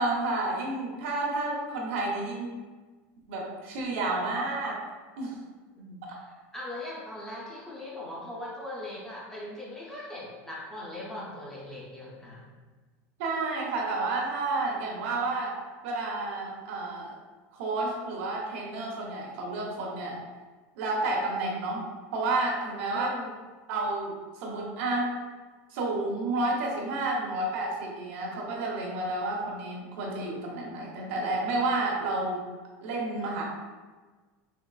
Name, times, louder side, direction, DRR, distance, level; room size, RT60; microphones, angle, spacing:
voice 1, 0.0-2.5 3.3-4.8 5.2-5.4 6.1-6.2 13.2-15.6 15.8-17.1 17.5-20.2 20.8-21.8 22.1-23.1 23.7-25.1 25.7-32.4 32.8-33.4, right 2 dB, 70° right, -1 dB, 0.8 m, -30 dB
voice 2, 5.8-6.2 6.5-12.5 22.9-23.3, left 1 dB, 5° left, -5 dB, 0.5 m, -40 dB
3.6 x 2.9 x 2.3 m, 1.4 s
cardioid pair, 175°, 7 cm